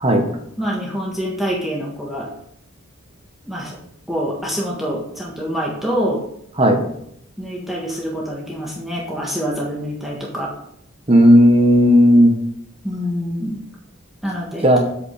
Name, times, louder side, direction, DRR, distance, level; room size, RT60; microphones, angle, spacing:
voice 1, 0.6-2.3 3.5-3.8 4.1-6.2 7.4-10.5 12.8-13.6 14.2-14.8, equal, ahead, -4 dB, 1.6 m, -26 dB
voice 2, 11.1-12.3 14.6-14.8, equal, 25° right, 4 dB, 1.3 m, -12 dB
8.4 x 5.2 x 6.6 m, 0.72 s
head